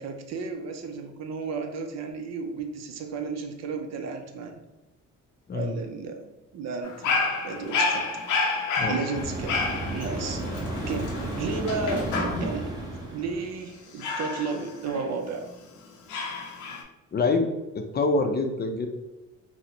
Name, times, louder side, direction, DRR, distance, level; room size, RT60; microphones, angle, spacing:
voice 1, 0.0-4.6 5.5-8.1 8.9-9.6 9.9-10.4 10.9-12.6 13.1-15.5, right 4 dB, 60° right, 5 dB, 0.5 m, -33 dB
Dog, 6.8-12.7 14.0-15.5 16.1-16.8, left 3 dB, 85° left, 0.6 m, -29 dB
sound 1, 9.1-13.6, right 2 dB, 15° right, 0.8 m, -33 dB
voice 2, 17.1-17.5 17.7-18.9, left 3 dB, 35° left, 5 dB, 0.4 m, -25 dB
4.0 x 2.0 x 2.8 m, 1.1 s
cardioid pair, 90°, 30 cm